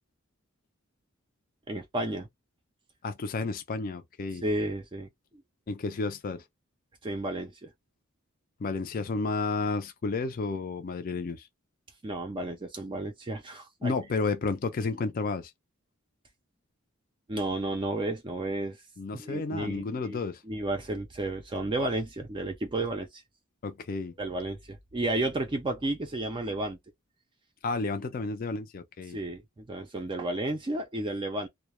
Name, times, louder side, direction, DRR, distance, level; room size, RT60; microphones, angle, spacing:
voice 1, 1.7-2.3 4.4-5.1 7.0-7.7 12.0-13.9 17.3-18.8 19.1-20.2 20.5-23.2 24.2-26.8 29.1-31.5, right 2 dB, 25° right, 0.4 m, -32 dB
voice 2, 3.0-4.4 5.7-6.4 8.6-11.5 13.8-15.5 19.0-20.4 23.6-24.1 27.6-29.2, left 3 dB, 45° left, 0.4 m, -31 dB
2.2 x 2.1 x 2.9 m
head